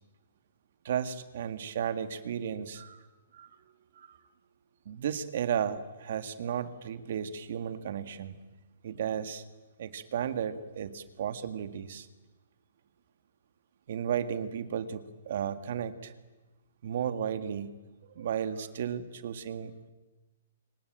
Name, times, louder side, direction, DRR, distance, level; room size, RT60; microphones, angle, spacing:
voice 1, 0.8-3.1 3.3-3.5 4.0-4.2 4.9-8.4 8.8-9.4 9.8-12.1 13.9-16.1 16.8-17.7 18.2-19.9, right 8 dB, 60° right, 11 dB, 1.9 m, -34 dB
25.5 x 24.0 x 9.1 m, 1.2 s
hypercardioid pair, 150°, 0 cm